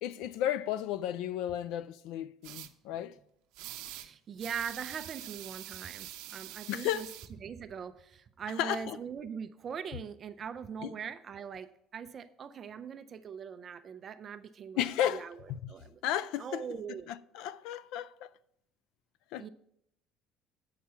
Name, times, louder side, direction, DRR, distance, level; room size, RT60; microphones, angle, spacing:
voice 1, 0.0-3.2 6.7-7.1 8.6-9.0 10.8-10.9 14.8-15.7 16.0-16.7 17.1-18.3 19.3-19.5, left 11 dB, 75° left, 0.3 m, -34 dB
sound 1, 2.4-2.7 3.5-4.1 4.4-7.3, right 15 dB, 85° right, 0.6 m, -45 dB
voice 2, 3.9-7.1 7.4-16.0 16.4-17.1 19.4-19.5, right 7 dB, 30° right, 0.4 m, -41 dB
8.5 x 5.8 x 5.6 m
cardioid pair, 155°, 0 cm